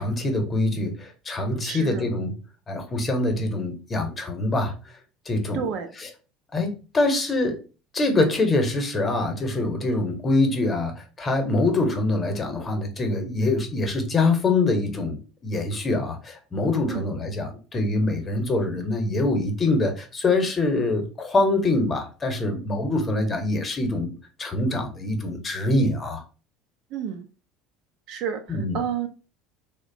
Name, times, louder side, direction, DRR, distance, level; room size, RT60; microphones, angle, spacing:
voice 1, 0.0-2.3 2.7-4.8 5.3-5.6 6.5-7.6 7.9-24.1 24.4-26.2 28.5-28.8, left 2 dB, 30° left, 0.8 m, -24 dB
voice 2, 1.6-2.1 5.5-5.9 8.1-8.3 16.9-17.1 26.9-27.3 28.1-29.1, right 8 dB, 65° right, 0.4 m, -30 dB
2.8 x 2.1 x 2.6 m
hypercardioid pair, 80°, 0 cm